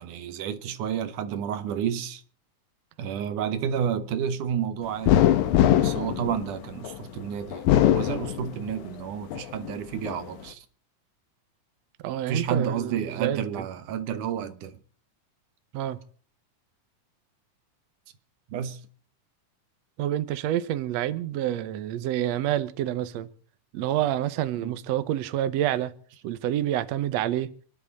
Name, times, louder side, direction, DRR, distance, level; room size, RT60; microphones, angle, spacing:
voice 1, 0.0-2.2 3.0-5.3 5.8-10.7 12.3-14.8 18.5-18.8 24.6-24.7, right 8 dB, 90° right, 2.7 m, -30 dB
sound 1, 5.1-7.0 7.5-8.9 9.3-10.2, left 12 dB, 75° left, 2.5 m, -22 dB
voice 2, 12.0-13.6 15.7-16.0 20.0-23.3 23.7-25.9 26.2-27.5, right 12 dB, 70° right, 2.0 m, -28 dB
27.5 x 11.0 x 4.1 m
omnidirectional pair, 3.5 m